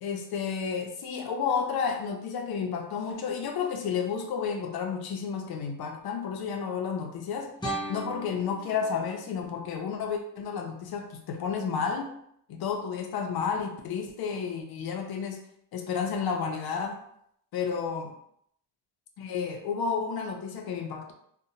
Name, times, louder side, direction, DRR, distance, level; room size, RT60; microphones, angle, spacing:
voice 1, 0.0-7.5 7.9-12.1 12.5-15.4 15.7-17.0 17.5-18.1 19.2-21.1, left 6 dB, 60° left, 3 dB, 0.5 m, -31 dB
sound 1, 7.6-10.6, right 1 dB, 10° left, 0.5 m, -39 dB
2.7 x 2.2 x 2.7 m, 0.71 s
cardioid pair, 145°, 43 cm